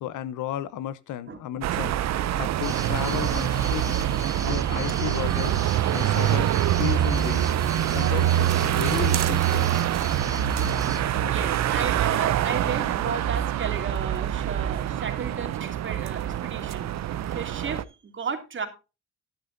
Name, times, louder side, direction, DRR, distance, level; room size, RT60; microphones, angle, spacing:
voice 1, 0.0-2.0 2.3-4.0 4.4-5.6 5.9-6.5 6.8-7.5 7.9-9.7, left 12 dB, 80° left, 0.8 m, -33 dB
sound 1, 1.6-17.8, right 12 dB, 60° right, 0.7 m, -25 dB
sound 2, 2.6-12.0, right 1 dB, 10° right, 1.9 m, -38 dB
sound 3, 5.6-12.7, left 3 dB, 30° left, 2.5 m, -50 dB
voice 2, 11.3-18.7, right 5 dB, 40° right, 2.6 m, -34 dB
11.5 x 11.0 x 2.6 m
cardioid pair, 90°, 30 cm